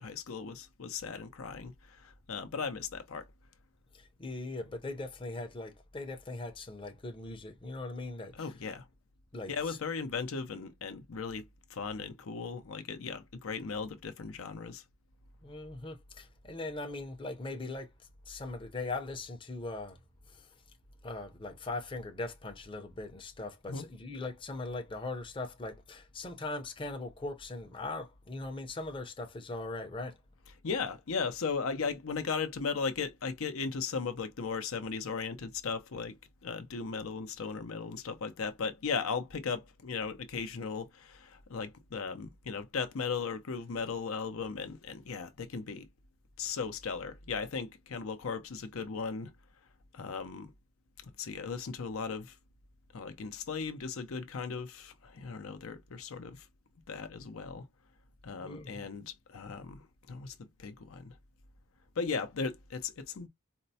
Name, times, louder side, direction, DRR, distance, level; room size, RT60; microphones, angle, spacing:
voice 1, 0.0-3.2 8.3-8.9 9.5-14.8 23.7-23.9 30.6-45.9 46.4-49.3 49.9-50.5 51.0-52.3 52.9-56.5 56.9-57.7 58.2-61.2 62.0-63.3, left 5 dB, 75° left, 0.6 m, -37 dB
voice 2, 3.9-8.5 9.3-9.8 15.4-17.9 18.3-20.0 20.3-20.5 21.0-30.2 58.4-58.9, left 2 dB, 25° left, 0.6 m, -40 dB
4.3 x 2.0 x 2.7 m
head